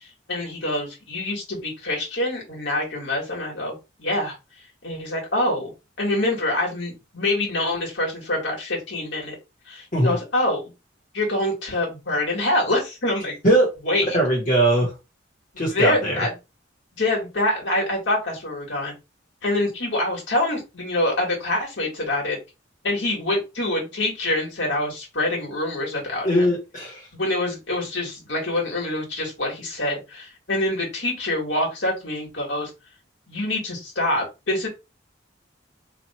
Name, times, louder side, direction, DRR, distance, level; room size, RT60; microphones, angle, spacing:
voice 1, 0.0-4.3 4.8-5.7 6.0-9.4 9.7-10.6 11.1-13.3 13.9-14.0 15.5-16.3 16.9-18.9 19.4-22.4 22.8-26.5 27.1-32.7 33.3-34.7, left 1 dB, 70° left, -1 dB, 1.8 m, -25 dB
voice 2, 14.1-14.9 15.6-16.3 26.2-27.1, right 1 dB, 45° left, -3 dB, 1.4 m, -20 dB
3.0 x 2.6 x 4.2 m, 0.26 s
head